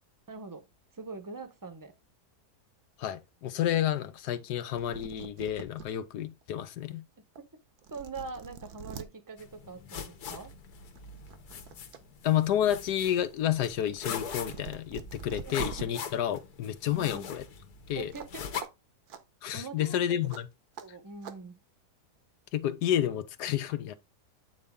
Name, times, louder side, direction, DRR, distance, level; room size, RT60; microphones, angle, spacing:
voice 1, 0.3-0.7 0.9-1.9 7.9-10.5 15.4-15.9 16.9-17.3 17.9-18.6 19.5-20.2 20.8-21.6, right 4 dB, 20° right, 0.6 m, -43 dB
voice 2, 3.0-7.0 12.2-17.4 17.9-18.1 19.4-20.5 22.5-23.9, left 11 dB, 90° left, 1.3 m, -30 dB
sound 1, 4.5-4.6 4.7-5.9 6.4-6.5 7.4-7.5 7.8-9.1 10.4-10.5 10.9-12.0 12.3-15.8 18.1-18.3 18.6-18.7 19.1-19.2 20.3-20.4 20.8-20.9 21.2-21.4, right 7 dB, 75° right, 1.3 m, -44 dB
sound 2, 9.4-18.6, left 7 dB, 75° left, 1.5 m, -42 dB
8.6 x 4.1 x 3.6 m
omnidirectional pair, 1.7 m